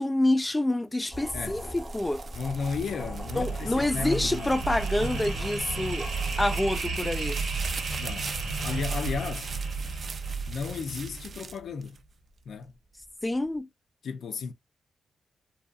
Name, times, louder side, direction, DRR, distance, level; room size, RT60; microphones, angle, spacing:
voice 1, 0.0-2.2 3.4-6.1 6.4-7.4 13.2-13.7, left 1 dB, 15° left, 0.3 m, -27 dB
sound 1, 1.1-6.7, equal, 5° right, 0.8 m, -42 dB
sound 2, 1.1-12.5 13.0-13.6, right 5 dB, 55° right, 0.4 m, -42 dB
voice 2, 1.3-1.7 2.3-4.6 8.0-9.5 10.5-12.0 12.5-12.7 14.0-14.5, left 5 dB, 80° left, 0.4 m, -34 dB
sound 3, 2.4-11.5, right 4 dB, 85° right, 0.8 m, -33 dB
2.6 x 2.3 x 2.3 m
cardioid pair, 95°, 0 cm